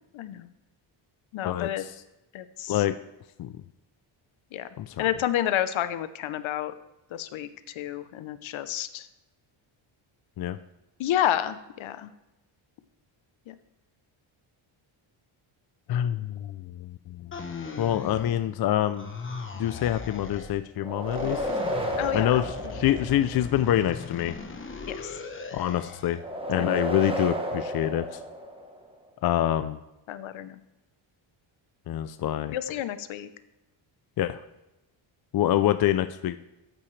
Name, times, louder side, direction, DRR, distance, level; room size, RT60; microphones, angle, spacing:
voice 1, 0.1-0.5 1.3-1.9 2.3-2.8 4.5-4.7 5.0-6.7 7.1-9.1 11.0-12.1 13.5-13.6 22.0-22.7 24.8-25.1 26.5-26.7 30.1-30.6 32.5-33.3, left 11 dB, 70° left, 12 dB, 0.8 m, -30 dB
voice 2, 1.4-1.9 2.7-3.0 3.4-3.5 4.8-5.1 10.4-10.6 15.9-17.3 17.8-19.1 19.5-21.4 22.1-24.3 25.5-26.2 26.5-28.2 29.2-29.8 31.9-32.6 34.2-34.4 35.3-36.4, left 12 dB, 50° left, 10 dB, 0.5 m, -26 dB
sound 1, 17.3-18.6 18.9-20.6 21.0-26.2, left 4 dB, 25° left, 1.0 m, -39 dB
sound 2, 20.8-23.6 26.2-28.9, equal, 10° right, 1.1 m, -32 dB
13.5 x 8.8 x 3.2 m, 0.97 s
cardioid pair, 150°, 49 cm